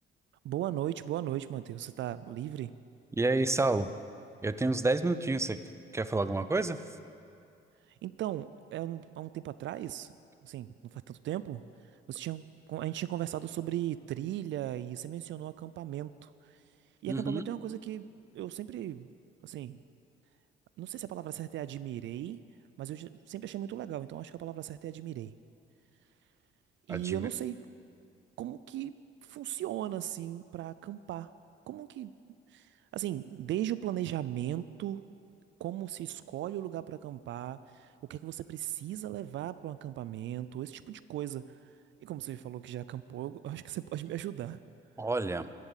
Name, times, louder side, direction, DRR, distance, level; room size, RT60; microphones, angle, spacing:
voice 1, 0.4-2.7 7.9-10.1 10.4-11.6 12.1-16.6 17.0-18.1 18.3-19.1 19.4-19.8 20.8-22.4 22.8-25.3 26.9-27.6 28.4-29.0 29.2-31.3 31.7-32.1 32.5-35.0 35.6-41.4 42.0-44.6, right 12 dB, 70° right, 15 dB, 0.4 m, -37 dB
voice 2, 3.2-3.9 4.4-5.6 5.9-6.8 17.1-17.4 26.9-27.3 45.0-45.5, right 2 dB, 15° right, 12 dB, 0.5 m, -29 dB
14.5 x 7.7 x 8.0 m, 2.5 s
cardioid pair, 90°, 20 cm